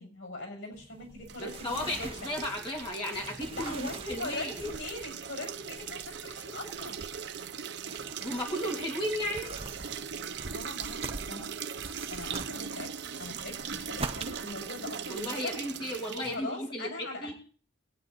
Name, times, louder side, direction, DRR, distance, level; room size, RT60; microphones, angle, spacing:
voice 1, 0.0-2.1 3.5-7.0 10.5-11.5 12.1-15.6 16.1-17.3, left 2 dB, 85° left, 3 dB, 6.6 m, -41 dB
sound 1, 0.7-15.4, right 3 dB, 30° right, 0.9 m, -45 dB
sound 2, 1.3-16.4, right 7 dB, 60° right, 0.7 m, -40 dB
voice 2, 1.4-4.5 8.2-9.6 15.1-17.3, left 1 dB, 25° left, -1 dB, 2.9 m, -35 dB
22.5 x 9.3 x 4.1 m, 0.43 s
head